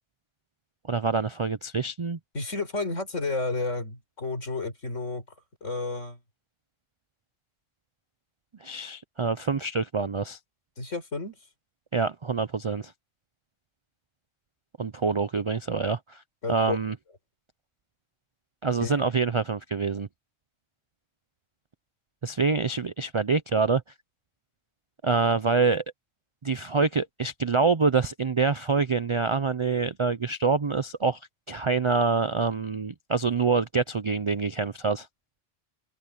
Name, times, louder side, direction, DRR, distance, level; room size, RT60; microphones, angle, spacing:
voice 1, 0.9-2.2 8.6-10.4 11.9-12.9 14.8-16.2 16.5-16.9 18.6-20.1 22.2-23.8 25.0-25.8 26.4-31.2 31.5-35.1, right 4 dB, 50° right, 0.3 m, -26 dB
voice 2, 2.3-5.2 5.6-6.2 10.8-11.4 16.4-16.8 18.8-18.9, left 3 dB, 75° left, 4.9 m, -31 dB
open air
omnidirectional pair, 1.3 m